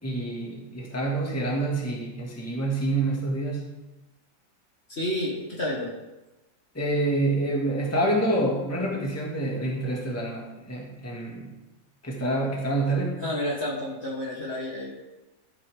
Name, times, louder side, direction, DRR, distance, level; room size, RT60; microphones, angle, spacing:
voice 1, 0.0-3.7 6.7-11.5 12.0-13.2, right 2 dB, 10° left, -2 dB, 1.7 m, -27 dB
voice 2, 4.9-5.9 13.2-14.9, left 1 dB, 35° left, -3 dB, 1.8 m, -30 dB
14.0 x 8.4 x 3.6 m, 1.0 s
omnidirectional pair, 2.1 m